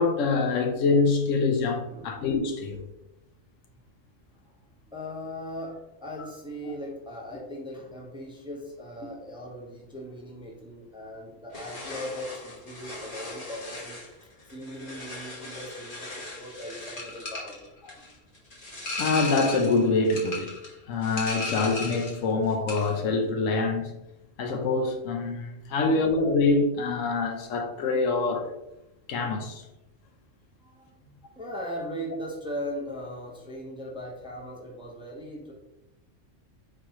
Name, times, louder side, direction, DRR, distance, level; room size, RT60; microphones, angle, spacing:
voice 1, 0.0-2.8 6.7-6.8 19.0-20.5 20.9-24.0 24.4-28.5 29.1-29.6, left 3 dB, 80° left, 1.0 m, -25 dB
voice 2, 4.9-17.7 30.6-35.5, equal, 5° right, 0.6 m, -39 dB
sound 1, 11.5-22.2 22.5-23.0, left 2 dB, 45° left, 1.3 m, -37 dB
4.5 x 4.0 x 2.9 m
omnidirectional pair, 1.3 m